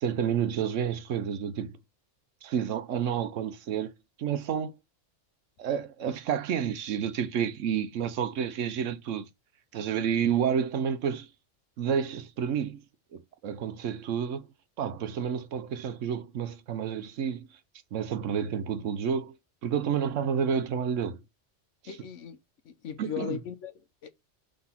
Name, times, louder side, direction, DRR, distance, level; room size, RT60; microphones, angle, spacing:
voice 1, 0.0-1.8 2.4-3.9 4.2-4.8 5.6-9.3 9.7-11.3 11.8-12.8 13.1-14.5 14.8-17.5 17.9-19.3 19.6-21.2 23.0-23.4, right 8 dB, 80° right, 1.1 m, -30 dB
voice 2, 21.9-22.4 22.6-24.1, left 9 dB, 75° left, 1.2 m, -38 dB
5.9 x 3.8 x 5.6 m
omnidirectional pair, 1.3 m